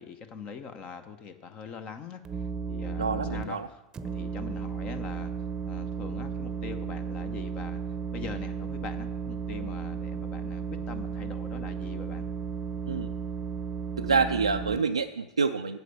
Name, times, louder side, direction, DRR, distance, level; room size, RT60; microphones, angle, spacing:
voice 1, 0.0-5.3 5.6-7.8 8.1-12.3, left 6 dB, 35° left, 10 dB, 0.8 m, -43 dB
sound 1, 2.3-3.4 3.9-14.8, right 6 dB, 20° right, 0.8 m, -34 dB
voice 2, 3.0-3.7 12.9-13.1 14.0-15.8, right 5 dB, 80° right, 5 dB, 0.3 m, -27 dB
9.4 x 7.0 x 6.5 m, 1.0 s
figure-of-eight pair, 85°, 3 cm